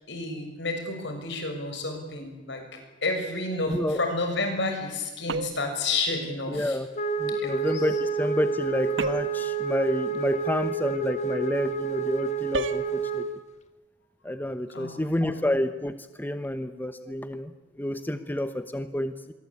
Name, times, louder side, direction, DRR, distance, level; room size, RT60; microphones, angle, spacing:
voice 1, 0.1-2.6 3.0-6.8 7.4-7.6 14.7-15.5, left 2 dB, 70° left, 5 dB, 6.8 m, -30 dB
voice 2, 3.7-4.0 6.5-6.9 7.2-13.3 14.2-19.3, left 1 dB, 10° left, 10 dB, 1.0 m, -29 dB
sound 1, 5.3-5.8 9.0-9.5 12.5-12.9, right 3 dB, 90° right, 1.3 m, -31 dB
Wind instrument woodwind instrument, 6.9-13.4, right 4 dB, 40° left, 1.8 m, -29 dB
26.5 x 23.0 x 8.7 m, 1.1 s
head